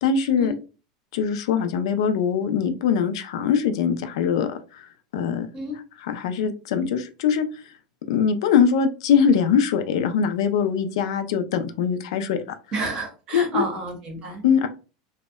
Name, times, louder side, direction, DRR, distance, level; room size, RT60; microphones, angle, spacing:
voice 1, 0.0-0.5 1.1-4.9 5.1-5.5 6.0-7.5 8.1-12.4 13.3-13.6 14.4-14.7, left 7 dB, 70° left, 8 dB, 0.3 m, -22 dB
voice 2, 12.7-14.4, right 2 dB, 25° right, 3 dB, 0.7 m, -30 dB
2.7 x 2.1 x 2.2 m, 0.34 s
supercardioid pair, 165°, 3 cm